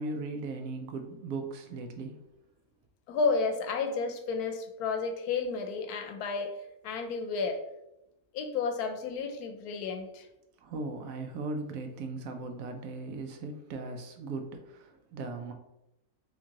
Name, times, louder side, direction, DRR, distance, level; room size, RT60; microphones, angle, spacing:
voice 1, 0.0-2.2 10.6-15.5, right 3 dB, 70° right, 5 dB, 0.9 m, -38 dB
voice 2, 3.1-6.6 6.8-7.6 8.3-10.3, left 4 dB, 80° left, 6 dB, 1.1 m, -31 dB
3.6 x 2.9 x 3.7 m, 0.89 s
omnidirectional pair, 1.6 m